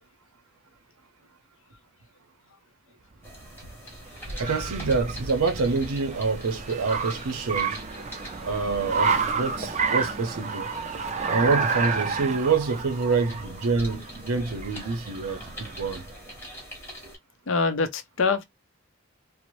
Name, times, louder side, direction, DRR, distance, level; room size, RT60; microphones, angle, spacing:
sound 1, 3.2-17.2, equal, 10° left, 0.8 m, -45 dB
Car, 3.2-16.2, right 5 dB, 30° right, 0.4 m, -30 dB
voice 1, 4.4-7.8 8.4-10.7 11.3-15.5 15.8-16.1, right 4 dB, 85° right, 0.6 m, -26 dB
voice 2, 17.5-18.4, left 4 dB, 60° left, 0.5 m, -24 dB
2.5 x 2.0 x 3.0 m
head